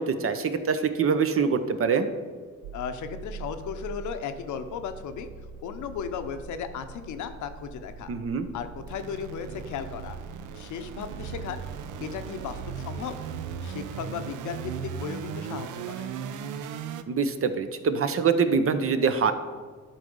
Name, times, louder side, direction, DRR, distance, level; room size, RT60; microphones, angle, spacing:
voice 1, 0.0-2.1 8.1-8.5 17.1-19.3, right 5 dB, 45° right, 9 dB, 0.8 m, -24 dB
sound 1, 2.6-17.0, right 6 dB, 85° right, 0.6 m, -38 dB
voice 2, 2.7-5.3 5.6-8.1 8.5-10.2 10.5-11.6 12.0-13.2 13.6-16.1, left 7 dB, 75° left, 8 dB, 0.8 m, -36 dB
11.5 x 4.0 x 5.3 m, 1.5 s
cardioid pair, 90°, 30 cm